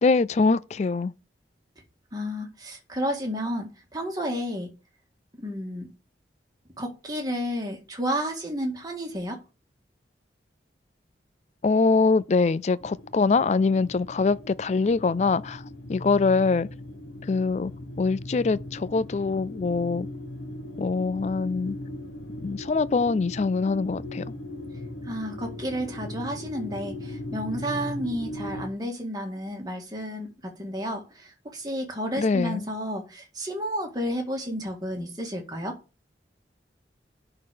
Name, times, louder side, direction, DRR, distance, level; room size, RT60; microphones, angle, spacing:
voice 1, 0.0-1.1 11.6-15.6 15.9-16.7 17.3-17.7 18.0-20.1 20.8-21.8 22.4-24.2 32.2-32.6, left 4 dB, 40° left, 0.4 m, -23 dB
voice 2, 2.1-4.7 5.4-5.9 6.8-9.4 25.0-35.8, equal, 20° right, 1.8 m, -31 dB
sound 1, 12.8-28.7, left 1 dB, 90° left, 1.2 m, -38 dB
10.5 x 4.0 x 5.0 m
head